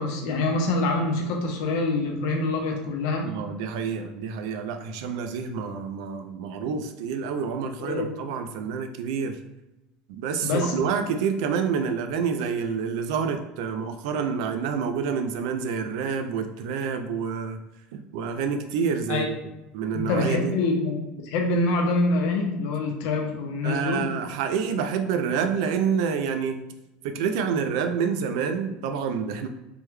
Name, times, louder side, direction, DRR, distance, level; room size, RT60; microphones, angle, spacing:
voice 1, 0.0-3.3 7.8-8.1 10.4-10.8 19.1-19.3 19.9-24.1, left 2 dB, 65° left, 2 dB, 0.7 m, -25 dB
voice 2, 3.2-9.4 10.1-17.6 17.9-19.3 19.7-20.5 23.6-26.6 27.0-29.5, right 6 dB, 75° right, 7 dB, 0.4 m, -28 dB
3.4 x 2.2 x 3.1 m, 0.97 s
cardioid pair, 170°, 3 cm